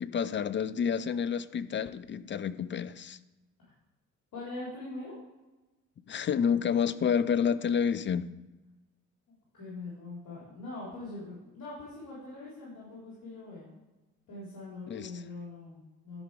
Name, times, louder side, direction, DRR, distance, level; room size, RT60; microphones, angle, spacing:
voice 1, 0.0-3.2 6.1-8.3 14.9-15.1, left 7 dB, 30° left, 14 dB, 0.5 m, -29 dB
voice 2, 4.3-5.1 9.5-13.7 14.3-16.2, left 2 dB, 55° left, -7 dB, 3.6 m, -42 dB
11.5 x 5.1 x 4.8 m, 1.1 s
hypercardioid pair, 50°, 40 cm